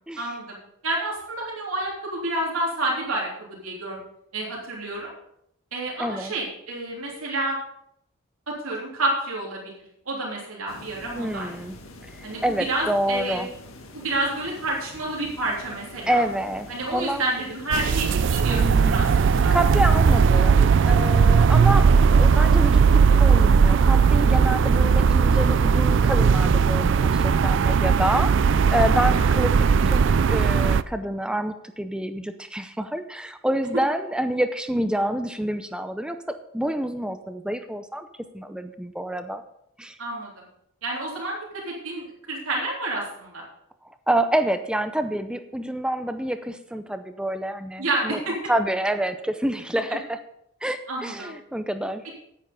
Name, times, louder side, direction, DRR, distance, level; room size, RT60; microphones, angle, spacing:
voice 1, 0.2-0.6 0.8-4.0 4.3-5.1 5.7-7.6 8.5-9.8 10.1-11.6 12.2-13.4 13.9-16.2 16.7-19.5 28.9-29.3 40.0-40.3 40.8-43.4 47.8-48.4 50.9-51.3, right 2 dB, 85° right, -3 dB, 3.4 m, -29 dB
voice 2, 6.0-6.3 11.2-11.8 12.1-13.5 16.1-17.2 18.5-19.1 19.5-29.5 29.9-38.1 38.3-39.4 39.8-40.0 43.8-48.2 48.5-50.2 50.6-52.0, right 1 dB, 5° right, 9 dB, 0.5 m, -27 dB
sound 1, 10.7-20.4, left 2 dB, 75° left, 1.7 m, -45 dB
sound 2, 17.7-30.8, right 5 dB, 60° right, 0.4 m, -18 dB
9.5 x 9.1 x 5.4 m, 0.75 s
head